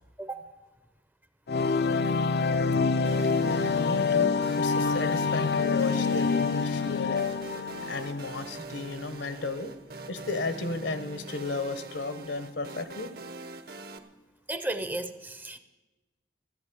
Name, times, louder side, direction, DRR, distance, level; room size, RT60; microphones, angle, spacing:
sound 1, 1.5-8.4, left 4 dB, 60° left, 0.5 m, -26 dB
sound 2, 3.0-14.0, right 2 dB, 55° right, 1.0 m, -43 dB
voice 1, 3.5-7.2 7.5-9.7 10.1-13.1, left 3 dB, 75° left, 11 dB, 1.2 m, -34 dB
voice 2, 14.5-15.6, right 2 dB, 10° right, 11 dB, 0.6 m, -34 dB
15.0 x 7.7 x 9.5 m, 1.1 s
head